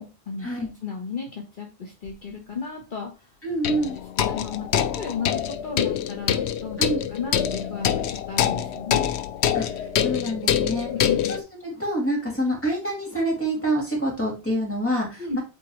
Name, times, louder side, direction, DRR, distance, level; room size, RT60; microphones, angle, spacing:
voice 1, 0.0-0.5 0.8-3.2 4.2-6.8 7.1-9.1 10.8-11.3 15.2-15.4, left 5 dB, 50° left, 1 dB, 1.1 m, -34 dB
sound 1, 2.1-2.2 3.6-11.4, left 9 dB, 85° left, 0.9 m, -25 dB
voice 2, 3.4-4.0 6.8-7.0 9.5-10.9 11.3-15.4, right 1 dB, 10° left, -2 dB, 2.4 m, -27 dB
8.2 x 3.7 x 3.1 m, 0.30 s
omnidirectional pair, 1.1 m